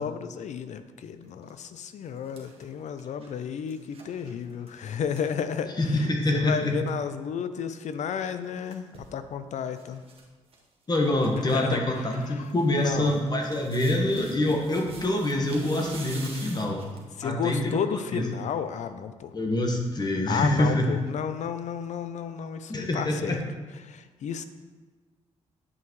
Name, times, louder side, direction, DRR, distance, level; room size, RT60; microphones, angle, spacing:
voice 1, 0.0-6.1 6.3-10.0 11.5-12.4 12.7-13.1 17.2-19.3 20.3-23.4 23.8-24.4, left 7 dB, 70° left, 11 dB, 0.5 m, -32 dB
sound 1, 1.2-1.5 1.9-6.1 6.4-6.5 6.7-7.0 8.2-9.1 9.7-10.2 10.5-10.6 10.9-11.6 11.9-17.1 17.7-17.8, right 3 dB, 50° right, 1.4 m, -47 dB
voice 2, 5.8-6.7 10.9-16.9 17.2-18.2 19.3-20.8 22.7-23.4, left 1 dB, 35° left, 2 dB, 1.3 m, -26 dB
9.4 x 5.7 x 3.1 m, 1.3 s
cardioid pair, 70°, 13 cm